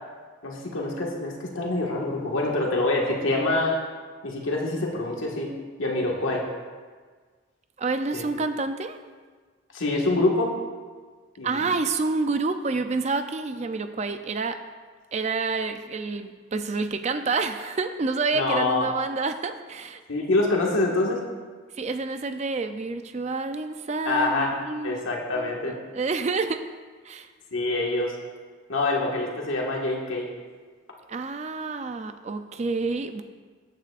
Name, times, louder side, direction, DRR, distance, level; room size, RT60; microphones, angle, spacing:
voice 1, 0.4-3.8 4.2-5.5 5.8-6.4 8.1-8.2 9.7-10.5 11.4-11.6 18.3-18.9 20.1-21.2 24.0-24.5 24.8-25.7 27.5-28.1 28.7-30.3, left 2 dB, 80° left, -2 dB, 1.7 m, -25 dB
voice 2, 7.8-9.0 11.4-14.6 15.1-20.0 21.7-26.6 27.0-27.3 31.1-33.2, right 3 dB, 35° right, 9 dB, 0.4 m, -28 dB
14.0 x 9.2 x 2.5 m, 1.5 s
head